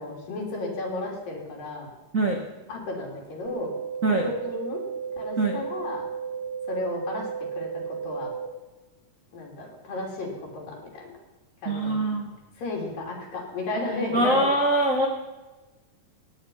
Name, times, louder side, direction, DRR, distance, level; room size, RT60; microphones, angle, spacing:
voice 1, 0.0-1.9 2.7-3.7 4.2-4.8 5.2-6.0 6.7-7.3 7.6-8.3 9.3-11.1 11.6-12.0 12.6-14.4, left 2 dB, 90° left, -1 dB, 5.0 m, -33 dB
voice 2, 2.1-2.4 4.0-4.3 5.4-5.6 11.6-12.3 14.1-15.1, right 2 dB, 70° right, 1 dB, 0.7 m, -23 dB
sound 1, 3.4-8.5, right 6 dB, 60° left, 0.5 m, -34 dB
18.0 x 9.5 x 5.6 m, 1.1 s
omnidirectional pair, 3.9 m